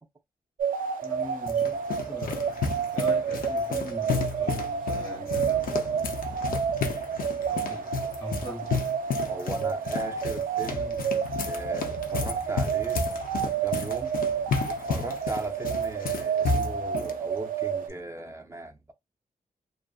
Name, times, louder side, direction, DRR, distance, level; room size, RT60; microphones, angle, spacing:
sound 1, 0.6-17.9, right 7 dB, 75° right, 0.5 m, -30 dB
sound 2, 1.0-17.1, left 5 dB, 80° left, 0.6 m, -32 dB
voice 1, 1.0-6.2 7.5-7.9 8.2-8.8, left 1 dB, 35° left, 0.9 m, -41 dB
voice 2, 9.3-11.0 11.4-13.0 13.6-14.1 14.7-18.9, right 2 dB, 20° right, 0.5 m, -37 dB
2.5 x 2.5 x 2.3 m
wide cardioid pair, 105°, 14 cm